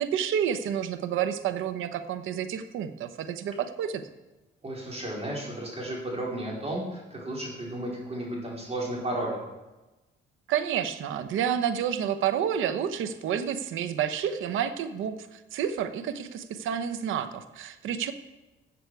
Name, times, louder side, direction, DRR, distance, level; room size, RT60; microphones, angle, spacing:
voice 1, 0.0-4.0 10.5-18.1, right 9 dB, 80° right, 11 dB, 0.9 m, -29 dB
voice 2, 4.6-9.4, right 1 dB, 30° right, -3 dB, 4.3 m, -33 dB
14.0 x 7.7 x 4.8 m, 1.1 s
cardioid pair, 90°, 20 cm